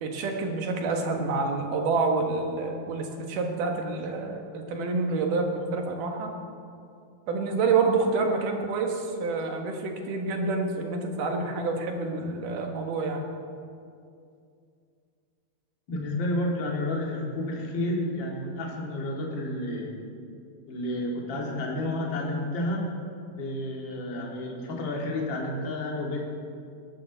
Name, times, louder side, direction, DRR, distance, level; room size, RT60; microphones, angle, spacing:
voice 1, 0.0-6.3 7.3-13.2, right 4 dB, 70° right, 3 dB, 2.8 m, -28 dB
voice 2, 15.9-19.9 20.7-22.9 23.3-26.2, left 1 dB, 40° left, -2 dB, 2.3 m, -30 dB
20.0 x 12.5 x 4.0 m, 2.4 s
omnidirectional pair, 4.0 m